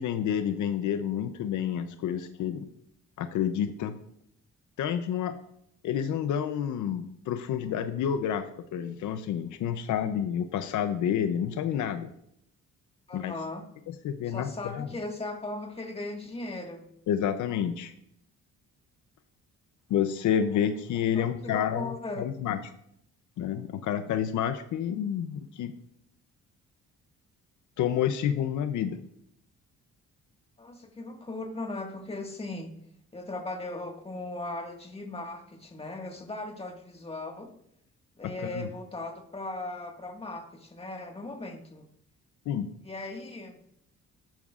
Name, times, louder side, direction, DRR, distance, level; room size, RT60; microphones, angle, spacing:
voice 1, 0.0-2.6 3.2-4.0 4.8-5.4 5.8-8.4 8.7-12.1 13.1-13.3 13.9-14.9 17.1-17.9 19.9-22.6 23.4-25.7 27.8-29.0 38.2-38.7 42.5-42.7, left 9 dB, 75° left, 9 dB, 0.7 m, -29 dB
voice 2, 13.1-13.6 14.3-16.9 21.1-22.3 30.6-32.7 33.1-37.5 38.2-41.8 42.8-43.6, left 2 dB, 20° left, 2 dB, 1.8 m, -38 dB
12.5 x 9.1 x 2.5 m, 0.72 s
cardioid pair, 90°, 30 cm